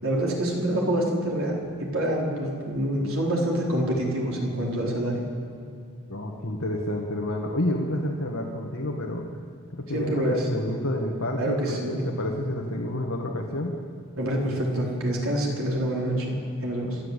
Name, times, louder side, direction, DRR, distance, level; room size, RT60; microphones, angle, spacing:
voice 1, 0.0-5.2 9.9-10.4 11.4-12.1 14.2-17.0, right 1 dB, 70° right, -2 dB, 4.6 m, -26 dB
voice 2, 6.1-9.3 9.7-13.7, left 1 dB, 65° left, 0 dB, 1.8 m, -29 dB
27.0 x 13.5 x 8.3 m, 2.2 s
head